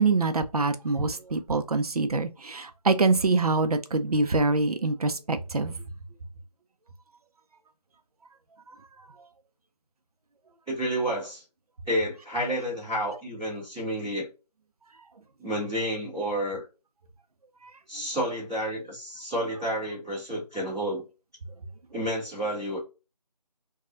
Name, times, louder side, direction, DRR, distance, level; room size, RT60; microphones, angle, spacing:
voice 1, 0.0-5.7, right 3 dB, 65° right, 0.5 m, -25 dB
voice 2, 10.7-11.4 11.9-14.3 15.4-16.7 17.9-21.0 21.9-22.8, equal, 5° right, 0.7 m, -30 dB
3.0 x 2.3 x 2.5 m
figure-of-eight pair, 160°, 21 cm